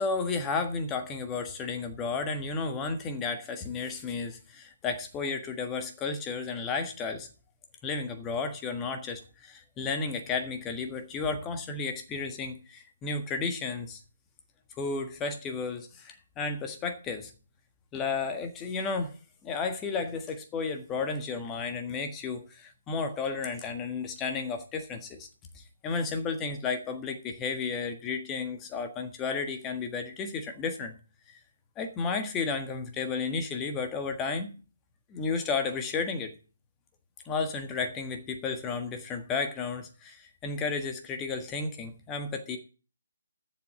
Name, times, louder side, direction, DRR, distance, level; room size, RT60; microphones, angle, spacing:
voice 1, 0.0-7.3 7.8-14.0 14.8-17.3 17.9-19.1 19.4-25.3 25.5-31.0 31.3-31.4 31.8-34.5 35.1-36.3 37.2-42.6, left 4 dB, 15° left, 6 dB, 1.5 m, -33 dB
7.9 x 6.9 x 7.8 m, 0.36 s
figure-of-eight pair, 145°, 0 cm